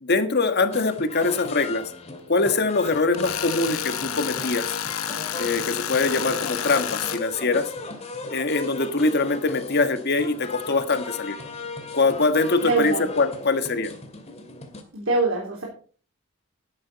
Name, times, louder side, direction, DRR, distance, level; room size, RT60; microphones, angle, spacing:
voice 1, 0.0-1.8 2.3-4.7 5.4-7.7 8.3-11.4 11.9-13.9, left 3 dB, 50° left, 9 dB, 1.4 m, -23 dB
sound 1, 0.7-14.8, left 3 dB, 30° left, 2.2 m, -37 dB
Tools, 3.1-7.2, left 10 dB, 85° left, 0.8 m, -30 dB
voice 2, 12.6-13.0 14.9-15.6, right 3 dB, 75° right, -2 dB, 3.5 m, -23 dB
12.5 x 11.5 x 4.1 m, 0.41 s
head